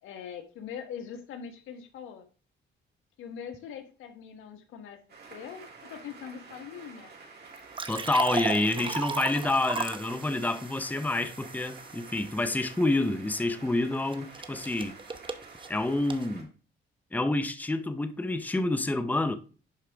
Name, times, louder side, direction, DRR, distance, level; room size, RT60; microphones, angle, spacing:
voice 1, 0.0-2.2 3.2-5.0 5.3-7.1 8.5-8.7, left 8 dB, 85° left, 1.3 m, -42 dB
sound 1, 5.1-16.4, right 4 dB, 55° right, 2.7 m, -49 dB
sound 2, 7.6-12.6 14.1-16.3, right 4 dB, 25° right, 0.8 m, -36 dB
voice 2, 7.9-15.0 15.7-16.5 17.1-19.4, left 2 dB, 10° left, 0.7 m, -28 dB
11.0 x 4.8 x 3.4 m
cardioid pair, 90°, 20 cm